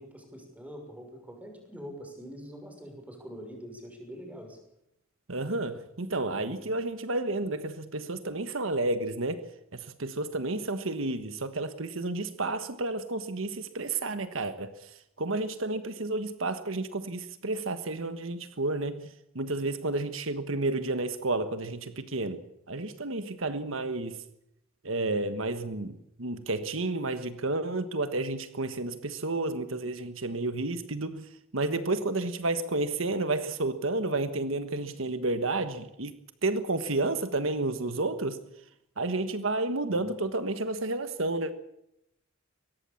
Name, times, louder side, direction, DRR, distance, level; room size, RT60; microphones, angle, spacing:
voice 1, 0.0-4.6 39.9-40.1, equal, 5° right, 3 dB, 6.2 m, -44 dB
voice 2, 5.3-9.4 9.7-22.4 22.7-24.2 24.8-36.1 36.4-38.4 39.0-41.5, right 2 dB, 75° right, 9 dB, 1.4 m, -31 dB
23.5 x 18.5 x 7.2 m, 0.81 s
head